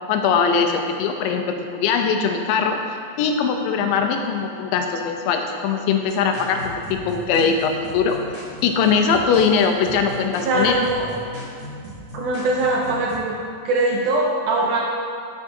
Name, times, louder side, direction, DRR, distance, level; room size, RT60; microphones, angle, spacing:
voice 1, 0.0-2.8 3.2-8.2 8.6-10.8, left 6 dB, 80° left, 4 dB, 2.2 m, -21 dB
sound 1, 6.0-13.2, equal, 55° right, 1.6 m, -37 dB
voice 2, 10.4-11.1 12.1-13.4 13.7-14.8, right 2 dB, 80° right, -2 dB, 1.8 m, -21 dB
10.5 x 4.7 x 2.7 m, 2.3 s
omnidirectional pair, 4.2 m